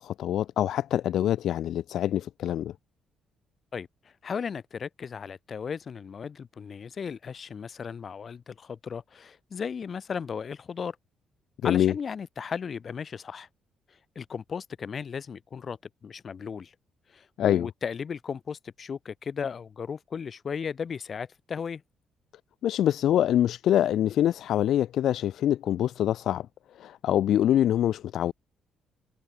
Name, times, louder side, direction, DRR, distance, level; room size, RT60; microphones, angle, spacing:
voice 1, 0.0-2.7 11.6-11.9 17.4-17.7 22.6-26.5 26.8-28.3, left 11 dB, 75° left, 3.5 m, -25 dB
voice 2, 3.7-11.0 11.6-13.5 14.2-16.7 17.1-21.8, left 6 dB, 45° left, 7.3 m, -36 dB
cardioid pair, 90°, 0 cm